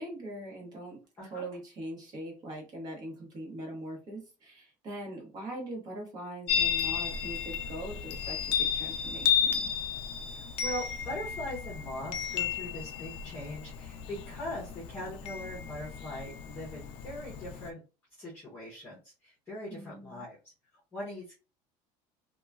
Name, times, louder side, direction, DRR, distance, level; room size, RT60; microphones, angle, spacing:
voice 1, 0.0-1.0 1.3-9.7 19.7-20.3, right 1 dB, 35° right, 0 dB, 1.2 m, -42 dB
Chime, 6.5-17.7, left 8 dB, 50° left, 0.4 m, -33 dB
voice 2, 10.3-17.8 18.2-20.4 20.9-21.3, left 1 dB, 15° left, -5 dB, 0.8 m, -41 dB
2.9 x 2.3 x 2.3 m, 0.33 s
cardioid pair, 180°, 12 cm